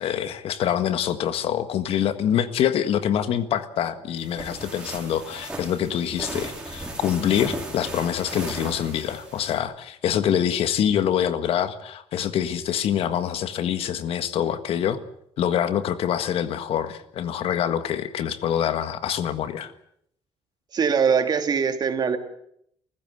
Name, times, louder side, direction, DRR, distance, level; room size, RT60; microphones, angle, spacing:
voice 1, 0.0-15.0 15.4-19.7, left 9 dB, 75° left, 11 dB, 1.7 m, -25 dB
sound 1, 4.2-9.6, right 2 dB, 10° right, 4.7 m, -36 dB
voice 2, 20.7-22.2, right 6 dB, 45° right, 7 dB, 2.5 m, -22 dB
28.5 x 15.0 x 8.0 m, 0.72 s
cardioid pair, 135°, 10 cm